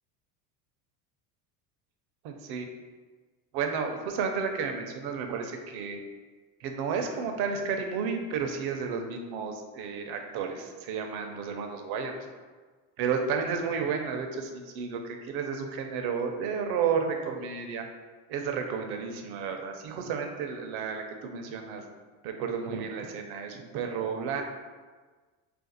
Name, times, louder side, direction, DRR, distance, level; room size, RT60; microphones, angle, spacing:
voice 1, 2.2-2.7 3.5-6.0 6.6-12.1 13.0-17.8 18.3-21.8 22.2-24.4, right 6 dB, 55° right, 4 dB, 0.6 m, -32 dB
2.5 x 2.3 x 3.9 m, 1.4 s
supercardioid pair, 100°, 46 cm